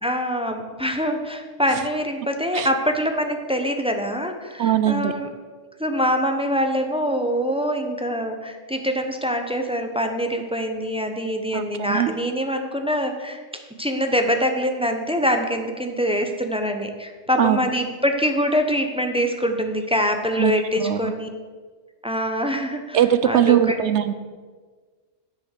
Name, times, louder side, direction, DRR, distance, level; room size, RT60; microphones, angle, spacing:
voice 1, 0.0-5.3 5.8-13.4 13.8-21.3 22.0-23.8, equal, 5° right, 5 dB, 0.7 m, -24 dB
voice 2, 4.6-5.1 11.5-12.1 17.4-17.6 20.4-21.1 22.9-24.1, right 10 dB, 70° right, 12 dB, 0.8 m, -20 dB
10.0 x 6.6 x 6.6 m, 1.5 s
omnidirectional pair, 1.3 m